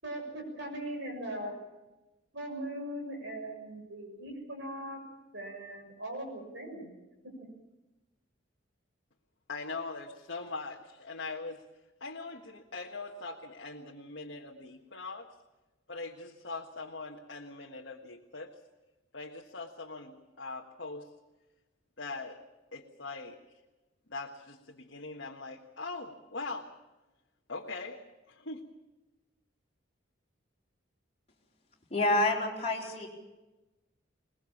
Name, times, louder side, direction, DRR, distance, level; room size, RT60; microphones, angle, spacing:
voice 1, 0.0-1.6 2.3-5.0 5.3-7.0 7.2-7.3 32.8-32.9, right 1 dB, 65° right, 3 dB, 6.7 m, -40 dB
voice 2, 9.5-11.6 12.0-15.3 15.9-18.5 19.1-21.1 22.0-22.4 22.7-23.4 24.1-26.7 27.5-28.6, left 3 dB, 65° left, -1 dB, 1.5 m, -41 dB
voice 3, 31.9-33.1, left 2 dB, 35° left, -2 dB, 4.2 m, -28 dB
22.0 x 20.5 x 7.2 m, 1.1 s
head